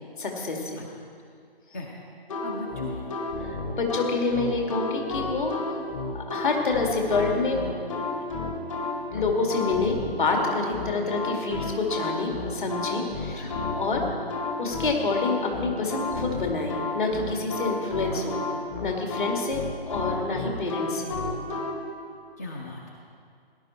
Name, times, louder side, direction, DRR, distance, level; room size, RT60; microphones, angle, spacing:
voice 1, 0.2-0.8 3.4-5.8 6.1-7.6 7.9-8.0 9.1-14.0 14.6-18.4 18.8-21.2, left 3 dB, 55° left, 1 dB, 2.3 m, -28 dB
sound 1, 2.3-21.7, left 3 dB, 35° left, 1.4 m, -31 dB
voice 2, 2.4-3.1 13.4-13.5 18.1-18.3 22.4-22.9, left 2 dB, 15° left, 0 dB, 0.5 m, -38 dB
17.5 x 11.0 x 4.3 m, 2.3 s
figure-of-eight pair, 140°, 30 cm